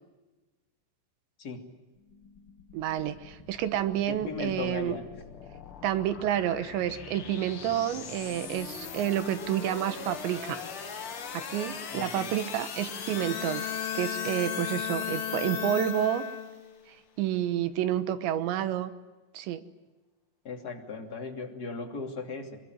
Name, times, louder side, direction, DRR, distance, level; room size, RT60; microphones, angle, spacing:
sound 1, 2.0-16.6, left 6 dB, 85° left, 1.2 m, -42 dB
voice 1, 2.7-5.0 5.8-10.6 11.3-13.7 13.9-16.2 16.9-18.9 19.3-19.6, right 11 dB, 70° right, 11 dB, 3.1 m, -29 dB
voice 2, 4.1-5.1 11.9-12.3 14.6-14.7 20.4-22.6, left 4 dB, 25° left, 2 dB, 2.3 m, -37 dB
Bowed string instrument, 12.8-16.9, left 9 dB, 65° left, 3.9 m, -35 dB
24.5 x 23.5 x 9.3 m, 1.2 s
omnidirectional pair, 5.9 m